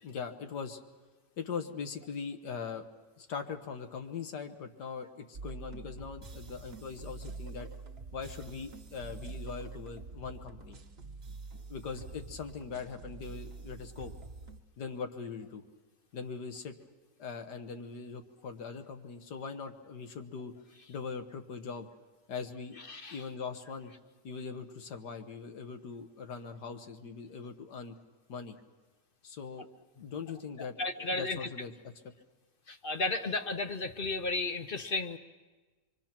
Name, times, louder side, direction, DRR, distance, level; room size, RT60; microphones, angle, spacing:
voice 1, 0.0-0.8 1.4-2.9 3.2-7.7 8.1-10.8 11.7-14.1 14.8-15.6 16.1-16.7 17.2-20.5 20.9-21.9 22.3-22.8 23.1-23.9 24.2-27.9 28.3-28.6 29.2-29.7 30.0-31.7, left 5 dB, 75° left, 7 dB, 1.9 m, -41 dB
sound 1, 5.3-14.6, right 3 dB, 40° right, 1.2 m, -46 dB
voice 2, 22.9-23.2 30.6-31.5 32.7-35.2, left 3 dB, 45° left, 8 dB, 0.8 m, -34 dB
26.0 x 23.5 x 6.0 m, 1.3 s
omnidirectional pair, 1.8 m